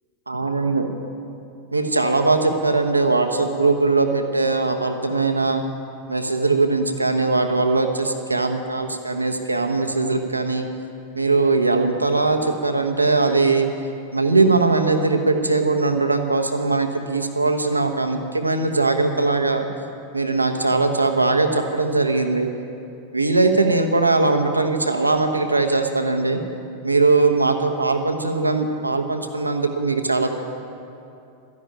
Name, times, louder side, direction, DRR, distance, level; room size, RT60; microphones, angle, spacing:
voice 1, 0.3-0.9 1.7-5.6 6.1-10.7 11.1-13.7 14.1-19.7 20.1-22.5 23.1-26.4 26.8-30.3, right 3 dB, 85° right, 5 dB, 1.1 m, -20 dB
13.5 x 11.0 x 8.9 m, 2.7 s
figure-of-eight pair, 90°, 0 cm